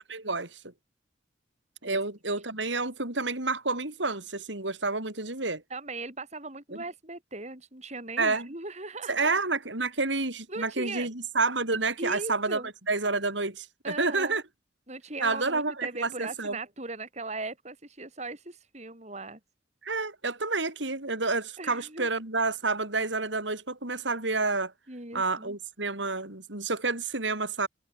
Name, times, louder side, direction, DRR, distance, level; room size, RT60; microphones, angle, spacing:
voice 1, 0.1-0.6 1.8-5.6 8.2-8.4 9.1-12.6 12.9-14.4 15.2-16.6 19.8-24.7 25.1-27.7, right 3 dB, 80° right, 6.2 m, -29 dB
voice 2, 5.7-9.3 10.5-11.1 12.0-12.7 13.8-14.4 14.9-19.4 21.6-22.1 24.9-25.5, right 2 dB, 40° right, 6.6 m, -39 dB
head